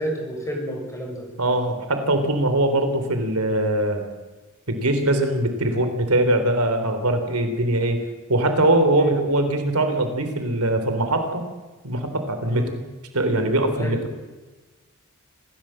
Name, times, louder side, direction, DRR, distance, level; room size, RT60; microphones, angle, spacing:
voice 1, 0.0-1.3 9.0-9.1 12.5-12.7 13.7-14.1, equal, 15° left, 1 dB, 6.5 m, -30 dB
voice 2, 1.4-4.0 4.7-8.0 8.3-11.4 11.8-12.6 13.1-14.0, right 1 dB, 80° right, 7 dB, 3.4 m, -21 dB
26.0 x 16.5 x 7.6 m, 1.2 s
head